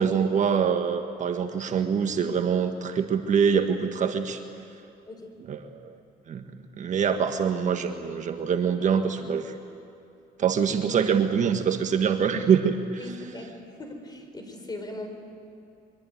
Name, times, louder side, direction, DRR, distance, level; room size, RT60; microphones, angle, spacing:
voice 1, 0.0-4.4 5.5-6.0 6.3-6.5 6.8-9.6 10.4-12.8, right 7 dB, 45° right, 6 dB, 1.5 m, -24 dB
voice 2, 13.0-15.1, left 2 dB, 25° left, 5 dB, 4.5 m, -39 dB
23.5 x 23.0 x 9.5 m, 2.6 s
cardioid pair, 110°, 17 cm